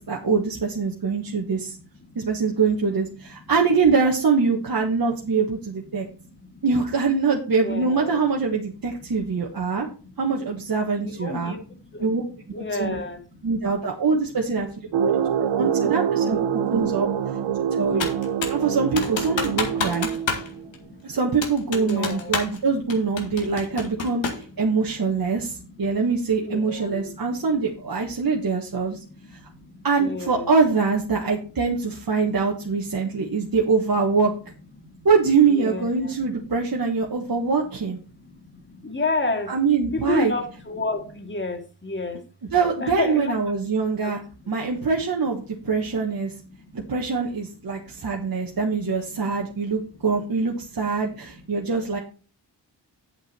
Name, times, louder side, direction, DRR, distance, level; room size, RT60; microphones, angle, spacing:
voice 1, 0.1-1.7 2.1-6.1 6.6-9.9 10.2-11.5 12.0-12.2 12.6-13.0 13.4-14.7 15.0-17.1 17.7-18.1 18.5-20.1 21.0-29.0 29.3-29.4 29.8-34.3 35.0-38.0 39.5-40.3 42.5-44.2 44.5-46.3 46.7-52.0, right 4 dB, 50° right, 0 dB, 1.6 m, -23 dB
voice 2, 5.9-6.6 7.6-8.2 9.0-9.2 9.5-10.1 11.0-12.1 12.5-13.5 14.9-15.5 16.5-16.8 17.4-18.0 18.6-18.7 19.6-21.0 21.7-22.6 23.2-24.2 24.5-24.7 25.5-26.0 26.4-27.3 27.6-27.9 28.2-30.5 33.0-33.4 34.8-35.0 35.5-36.3 37.3-37.4 38.2-39.6 39.9-42.2 42.8-43.4 43.6-43.7 44.0-44.1 45.6-46.0 46.4-47.0 47.7-48.3 49.1-50.1 50.8-50.9 51.5-51.6, left 3 dB, 25° left, 4 dB, 2.4 m, -34 dB
sound 1, 14.9-20.7, right 8 dB, 75° right, 0.9 m, -25 dB
Computer keyboard, 18.0-18.6 19.0-20.5 20.7-20.8 21.4-22.6 22.9-24.5, left 5 dB, 80° left, 2.0 m, -28 dB
8.2 x 7.6 x 4.4 m, 0.38 s
cardioid pair, 50°, 45 cm